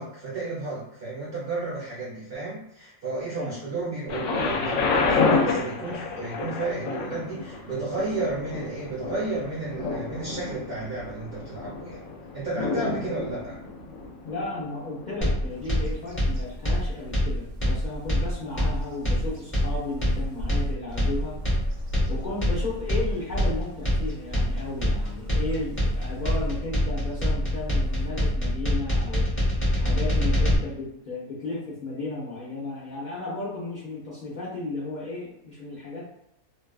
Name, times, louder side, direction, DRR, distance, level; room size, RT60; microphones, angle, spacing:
voice 1, 0.0-12.0 12.3-13.6, right 3 dB, 50° right, -8 dB, 1.1 m, -32 dB
Thunder, 4.1-15.9 16.7-16.8, left 4 dB, 70° left, 0.9 m, -29 dB
voice 2, 14.3-21.4 22.1-29.3 29.7-36.1, left 3 dB, 50° left, -6 dB, 0.6 m, -34 dB
sound 1, 15.2-30.6, equal, 10° left, 0.8 m, -25 dB
Bird vocalization bird call bird song, 15.4-28.7, equal, 70° right, 0.4 m, -39 dB
2.6 x 2.2 x 2.3 m, 0.79 s
omnidirectional pair, 1.4 m